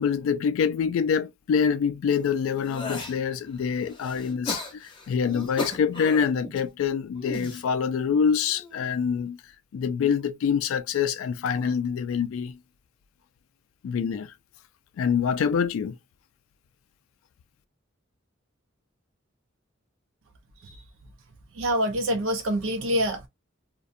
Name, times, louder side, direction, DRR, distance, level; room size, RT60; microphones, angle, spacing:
voice 1, 0.0-9.4 9.7-12.6 13.8-14.3 15.0-16.0, left 6 dB, 85° left, 0.3 m, -25 dB
sound 1, 2.1-3.2 3.7-6.6 7.1-7.6 8.4-8.8, left 2 dB, 25° left, 0.7 m, -37 dB
voice 2, 21.6-23.3, equal, 75° right, 0.5 m, -26 dB
2.6 x 2.1 x 2.4 m
head